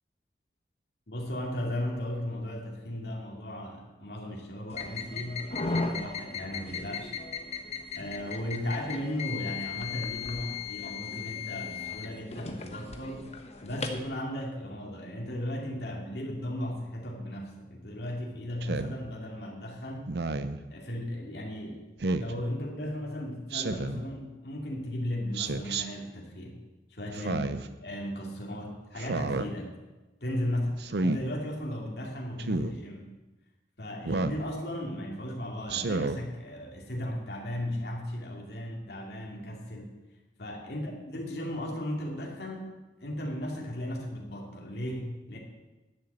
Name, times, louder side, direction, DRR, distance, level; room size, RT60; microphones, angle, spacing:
voice 1, 1.1-7.1 7.9-13.4 13.6-20.1 20.7-21.8 22.1-26.6 26.9-27.5 27.8-29.8 30.2-30.7 31.0-33.1 33.8-40.0 40.4-42.7 43.0-45.4, left 1 dB, 65° left, -1 dB, 2.5 m, -36 dB
sound 1, 4.7-14.0, left 5 dB, 35° left, 1.0 m, -36 dB
Speech synthesizer, 18.6-19.0 20.1-20.6 22.0-22.3 23.5-24.0 25.3-25.8 27.1-27.7 29.0-29.5 30.8-31.2 32.4-32.7 34.0-34.4 35.7-36.2, right 3 dB, 65° right, 0.6 m, -30 dB
11.0 x 6.9 x 8.0 m, 1.1 s
head